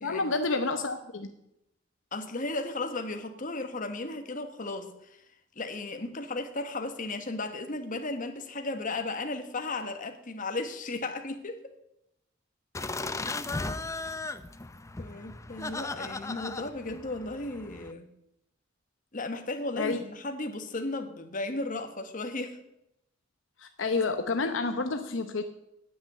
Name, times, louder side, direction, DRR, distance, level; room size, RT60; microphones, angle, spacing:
voice 1, 0.0-1.3 19.8-20.0 23.6-25.4, left 3 dB, 70° left, 7 dB, 0.9 m, -29 dB
voice 2, 2.1-5.2 5.6-11.7 12.9-13.2 15.0-18.1 19.1-22.6, left 2 dB, 45° left, 7 dB, 1.3 m, -35 dB
sound 1, 12.7-17.9, left 3 dB, 15° left, 0.5 m, -36 dB
9.5 x 7.9 x 9.5 m, 0.83 s
head